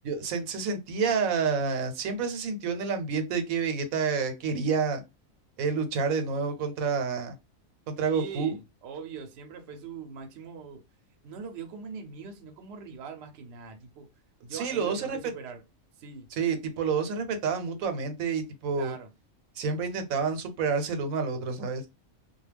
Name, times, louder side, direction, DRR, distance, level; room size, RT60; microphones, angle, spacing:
voice 1, 0.0-5.0 5.6-7.3 7.9-8.6 14.5-15.2 16.4-18.9 19.6-21.9, right 5 dB, 85° right, 1.1 m, -29 dB
voice 2, 8.1-10.8 11.2-14.1 14.4-15.6 16.0-16.3 18.8-19.1, right 6 dB, 60° right, 0.8 m, -41 dB
2.3 x 2.1 x 3.3 m
omnidirectional pair, 1.4 m